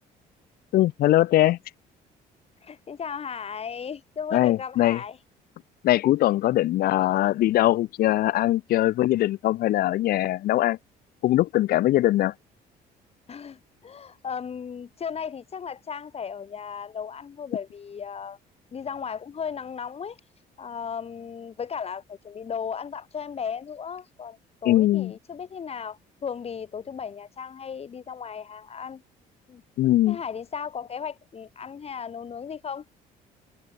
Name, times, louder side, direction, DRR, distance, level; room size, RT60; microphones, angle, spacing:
voice 1, 0.7-1.6 4.3-5.0 5.8-10.8 11.2-12.3 24.7-25.1 29.8-30.2, left 15 dB, 65° left, 0.6 m, -21 dB
voice 2, 2.6-5.2 13.3-18.4 18.7-20.2 20.6-29.0 29.5-29.6 30.1-32.8, left 7 dB, 35° left, 2.7 m, -35 dB
cardioid pair, 110°, 17 cm